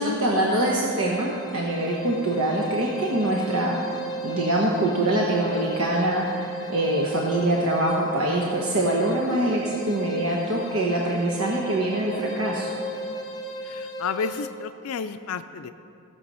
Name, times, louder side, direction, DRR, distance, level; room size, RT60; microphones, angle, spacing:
voice 1, 0.0-3.8 4.2-12.7, right 1 dB, 80° right, -2 dB, 1.1 m, -24 dB
sound 1, 0.9-14.5, right 2 dB, 20° left, 1.0 m, -35 dB
voice 2, 13.6-15.7, left 6 dB, 75° left, 9 dB, 0.4 m, -31 dB
16.0 x 6.8 x 5.5 m, 2.7 s
head